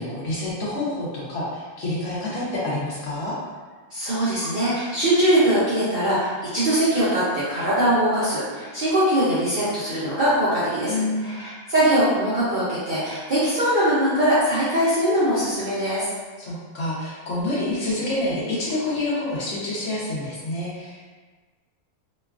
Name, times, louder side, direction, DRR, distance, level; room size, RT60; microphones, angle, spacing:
voice 1, 0.0-3.4 10.9-11.4 16.4-21.1, left 2 dB, 65° left, -7 dB, 1.1 m, -28 dB
voice 2, 3.9-16.1, right 1 dB, 50° right, -11 dB, 0.6 m, -22 dB
3.0 x 2.3 x 2.3 m, 1.4 s
omnidirectional pair, 1.5 m